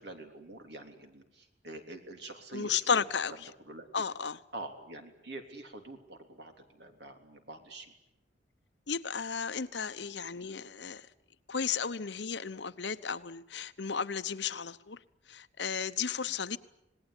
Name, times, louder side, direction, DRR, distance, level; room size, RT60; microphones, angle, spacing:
voice 1, 0.0-3.1 3.7-4.1 4.5-7.9 16.2-16.4, right 2 dB, 65° right, 3.5 m, -46 dB
voice 2, 2.5-3.5 3.9-4.4 8.9-11.1 11.5-15.0 15.3-16.6, left 6 dB, 70° left, 1.0 m, -34 dB
27.0 x 19.5 x 9.8 m
head